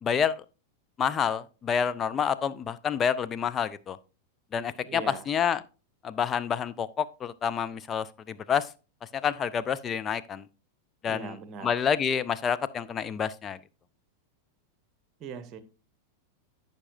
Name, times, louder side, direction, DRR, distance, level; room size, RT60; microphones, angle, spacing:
voice 1, 0.0-0.4 1.0-4.0 4.5-5.6 6.0-8.7 9.1-10.4 11.0-11.3 11.6-13.6, left 7 dB, 25° left, 0.4 m, -28 dB
voice 2, 4.8-5.3 11.1-11.7 15.2-15.6, right 6 dB, 30° right, 1.0 m, -40 dB
14.5 x 5.3 x 2.5 m
figure-of-eight pair, 90°, 0 cm